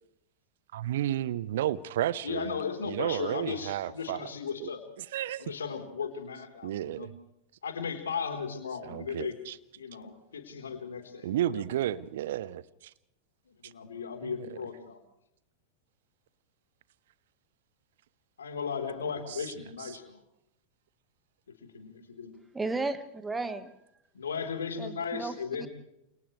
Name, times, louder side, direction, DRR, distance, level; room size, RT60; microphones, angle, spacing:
voice 1, 0.7-2.6 2.8-4.3 4.6-4.7 5.0-5.5 6.6-7.1 8.8-9.6 11.2-12.9 13.6-13.7 14.2-14.6 19.3-19.5 19.8-20.0, right 12 dB, 55° right, 0.8 m, -32 dB
voice 2, 2.2-4.8 5.4-7.1 7.6-9.3 9.8-11.3 11.5-11.6 13.6-15.0 18.4-20.2 21.6-22.3 24.1-25.7, left 6 dB, 70° left, 4.1 m, -36 dB
voice 3, 22.5-23.7 24.8-25.7, right 3 dB, 10° right, 1.7 m, -34 dB
29.0 x 29.0 x 3.4 m
figure-of-eight pair, 90°, 0 cm